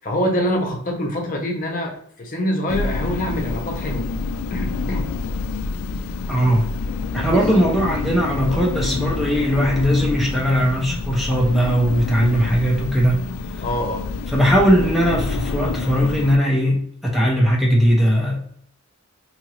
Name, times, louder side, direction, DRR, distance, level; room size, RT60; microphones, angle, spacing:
voice 1, 0.0-4.1 4.5-5.1 7.1-7.4 8.5-8.6 13.6-14.0, equal, 40° left, 1 dB, 0.8 m, -25 dB
sound 1, 2.7-16.4, left 4 dB, 80° left, 0.3 m, -27 dB
voice 2, 6.3-6.7 7.1-13.3 14.3-18.4, equal, ahead, -3 dB, 0.5 m, -19 dB
2.8 x 2.5 x 2.9 m, 0.63 s
head